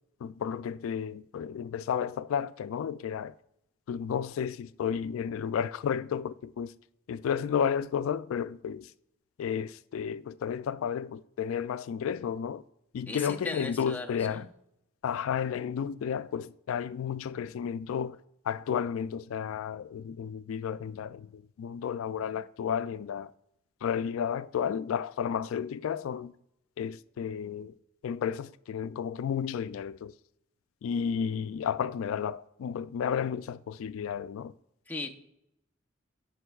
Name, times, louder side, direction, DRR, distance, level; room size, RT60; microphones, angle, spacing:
voice 1, 0.2-3.3 3.9-6.7 7.1-8.9 9.4-12.6 12.9-14.5 15.0-18.2 18.5-23.3 23.8-26.3 26.8-27.7 28.0-30.1 30.8-34.5, left 7 dB, 75° left, 0.3 m, -32 dB
voice 2, 13.1-14.5 34.9-35.1, left 2 dB, 10° left, 0.7 m, -38 dB
15.5 x 5.3 x 2.3 m
head